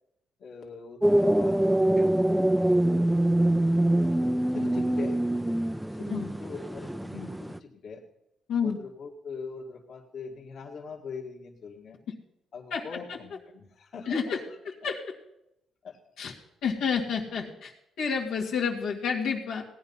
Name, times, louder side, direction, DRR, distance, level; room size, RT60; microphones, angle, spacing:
voice 1, 0.4-2.0 2.6-3.1 4.3-5.2 5.9-8.0 8.6-12.0 12.5-14.6 15.8-16.0, left 5 dB, 60° left, 0 dB, 2.0 m, -42 dB
sound 1, 1.0-7.6, right 1 dB, 5° right, 0.5 m, -24 dB
voice 2, 14.1-14.4 14.8-15.0 16.2-16.3 16.6-19.6, left 6 dB, 85° left, -2 dB, 2.1 m, -29 dB
17.0 x 9.8 x 5.6 m, 0.84 s
cardioid pair, 90°, 0 cm